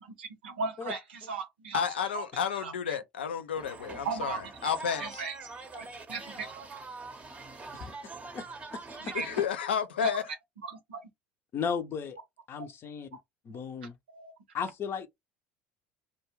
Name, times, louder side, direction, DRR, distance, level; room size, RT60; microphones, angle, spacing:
voice 1, 0.0-1.8 2.1-2.2 2.5-3.0 4.0-5.4 5.7-6.7 9.0-9.4 10.0-10.1 10.6-11.0 12.6-12.7 13.5-13.6 14.1-14.3, right 4 dB, 85° right, 0.6 m, -37 dB
voice 2, 1.7-5.2 9.1-10.2, left 7 dB, 90° left, 0.4 m, -31 dB
sound 1, 3.5-9.5, right 3 dB, 25° right, 0.7 m, -44 dB
voice 3, 8.7-9.1 11.5-12.2 12.5-13.2 13.4-14.0 14.5-15.1, left 6 dB, 45° left, 0.6 m, -35 dB
2.3 x 2.2 x 3.0 m
hypercardioid pair, 70°, 6 cm